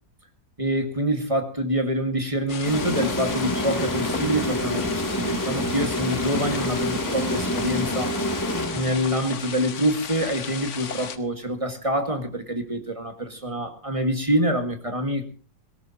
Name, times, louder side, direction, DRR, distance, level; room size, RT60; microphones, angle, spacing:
voice 1, 0.6-8.1 8.7-15.2, equal, 20° right, 6 dB, 1.7 m, -26 dB
sound 1, 2.5-11.2, left 7 dB, 50° left, 1.2 m, -35 dB
sound 2, 2.6-9.3, left 1 dB, 10° left, 2.2 m, -27 dB
18.5 x 17.0 x 2.8 m, 0.38 s
omnidirectional pair, 1.9 m